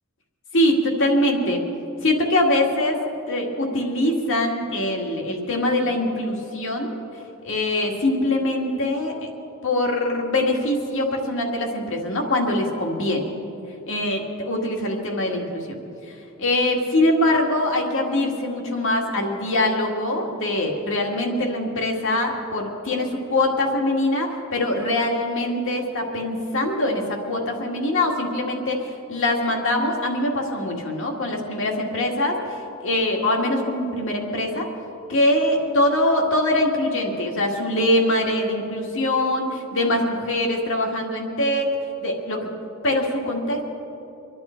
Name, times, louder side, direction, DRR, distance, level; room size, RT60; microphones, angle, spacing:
voice 1, 0.5-1.6 2.0-3.0 3.3-6.9 7.4-9.3 9.6-13.3 13.9-15.8 16.1-34.7 35.1-41.7 42.0-42.5 42.8-43.6, left 1 dB, 60° left, 1 dB, 2.0 m, -23 dB
25.0 x 11.5 x 4.5 m, 2.9 s
head